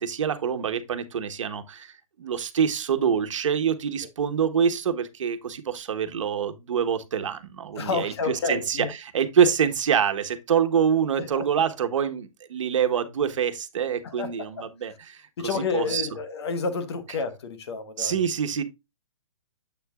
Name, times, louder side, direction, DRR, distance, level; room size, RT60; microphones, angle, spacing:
voice 1, 0.0-16.1 18.0-18.6, right 7 dB, 60° right, 1.3 m, -26 dB
voice 2, 7.8-8.9 11.2-11.4 14.0-14.7 15.4-18.2, left 4 dB, 50° left, 1.3 m, -30 dB
8.1 x 6.6 x 2.4 m
hypercardioid pair, 170°, 18 cm